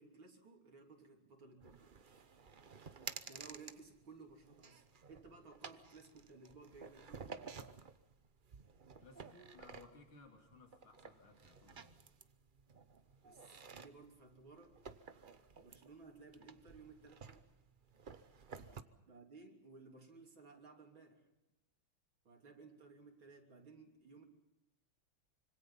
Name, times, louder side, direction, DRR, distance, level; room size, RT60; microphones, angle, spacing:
voice 1, 0.0-1.8 3.3-7.7 13.2-14.8 15.6-17.5 19.1-21.3 22.3-24.2, right 4 dB, 70° right, 1 dB, 3.9 m, -58 dB
sound 1, 1.6-18.8, right 5 dB, 45° right, 0.6 m, -54 dB
voice 2, 9.0-12.0 18.5-18.8, left 3 dB, 80° left, 3 dB, 4.0 m, -61 dB
26.0 x 25.0 x 5.6 m, 0.93 s
omnidirectional pair, 2.3 m